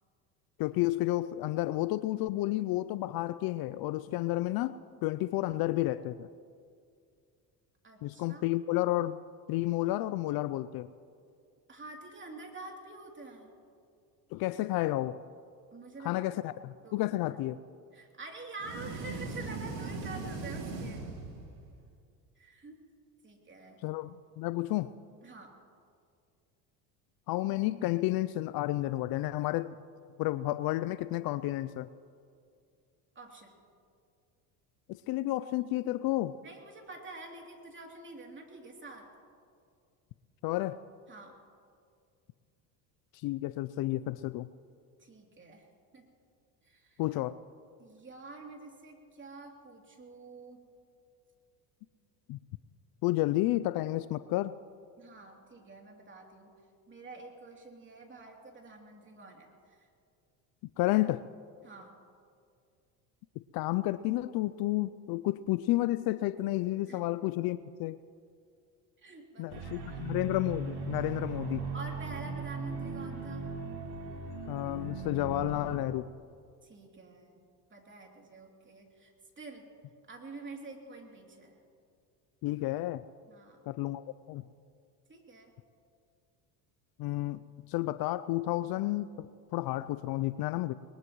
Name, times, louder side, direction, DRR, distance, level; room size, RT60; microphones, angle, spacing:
voice 1, 0.6-4.7 5.0-6.3 8.0-9.2 9.5-10.9 14.3-15.2 16.0-17.6 23.8-24.9 27.3-29.8 30.2-31.9 34.9-36.4 40.4-40.8 43.1-44.5 47.0-47.4 52.3-52.4 53.0-54.5 60.8-61.2 63.5-68.0 69.4-71.7 74.5-76.1 82.4-83.0 83.7-84.4 87.0-87.4 87.7-89.3 89.5-90.7, left 16 dB, 55° left, 15 dB, 0.5 m, -31 dB
voice 2, 7.8-8.4 11.7-13.5 15.7-16.4 16.8-17.2 17.9-21.0 22.4-22.8 23.2-23.8 25.2-25.5 33.1-33.6 36.4-39.1 41.1-41.4 45.0-45.6 45.9-46.1 46.6-47.0 47.8-50.6 55.0-56.5 56.9-59.9 61.6-62.0 66.9-67.0 69.0-70.1 71.7-73.5 76.6-77.4 77.7-79.7 80.1-81.6 83.3-83.6 85.1-85.5, right 3 dB, 25° right, 1 dB, 3.1 m, -47 dB
sound 1, 18.6-21.8, right 3 dB, 85° right, 2.7 m, -39 dB
sound 2, 69.5-75.8, right 4 dB, 55° right, 3.4 m, -38 dB
21.5 x 20.0 x 3.1 m, 2.3 s
supercardioid pair, 85°, 46 cm